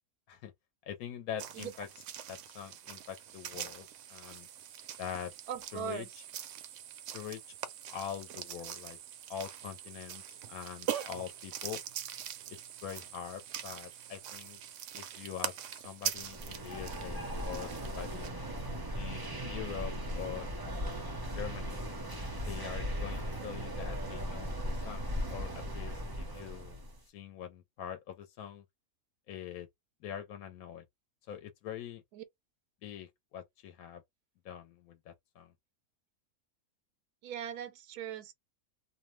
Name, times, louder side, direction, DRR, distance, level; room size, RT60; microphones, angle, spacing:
voice 1, 0.9-1.9 2.3-4.5 5.0-5.3 5.7-6.2 7.1-7.4 7.9-9.0 9.3-11.8 12.5-14.6 14.9-18.3 18.9-20.5 21.3-21.8 22.5-26.8 27.1-28.6 29.3-29.7 30.0-30.8 31.3-32.0 32.8-34.0 34.4-35.5, left 9 dB, 75° left, 1.0 m, -44 dB
sound 1, 1.4-18.3, right 10 dB, 70° right, 0.8 m, -43 dB
voice 2, 5.5-6.1 32.1-32.2 37.2-38.3, right 8 dB, 90° right, 1.1 m, -39 dB
sound 2, 16.2-27.0, equal, 40° right, 0.3 m, -38 dB
2.7 x 2.1 x 3.0 m
omnidirectional pair, 1.6 m